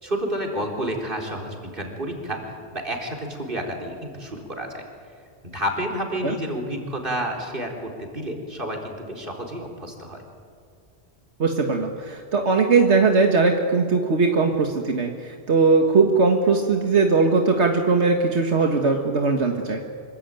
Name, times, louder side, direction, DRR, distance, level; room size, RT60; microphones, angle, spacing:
voice 1, 0.0-4.8 5.4-10.2, equal, 50° right, 1 dB, 4.4 m, -30 dB
voice 2, 11.4-19.8, right 4 dB, 85° right, 3 dB, 1.9 m, -20 dB
26.0 x 24.0 x 9.2 m, 2.1 s
omnidirectional pair, 1.1 m